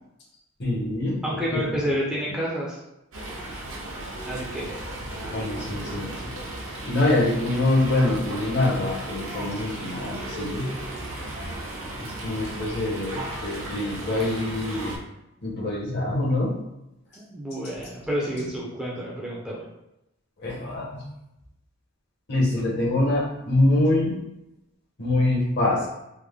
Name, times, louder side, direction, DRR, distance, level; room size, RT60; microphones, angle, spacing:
voice 1, 0.6-1.8 5.3-6.3 6.8-10.8 12.0-15.0 15.4-16.6 18.3-18.5 20.4-21.1 22.3-24.2 25.0-25.9, left 2 dB, 50° left, -3 dB, 0.9 m, -25 dB
voice 2, 1.2-2.8 4.3-4.7 17.1-19.6, equal, 5° right, -5 dB, 0.5 m, -29 dB
Fowl, 3.1-15.0, right 1 dB, 75° right, 0.9 m, -35 dB
3.4 x 2.0 x 3.5 m, 0.89 s
head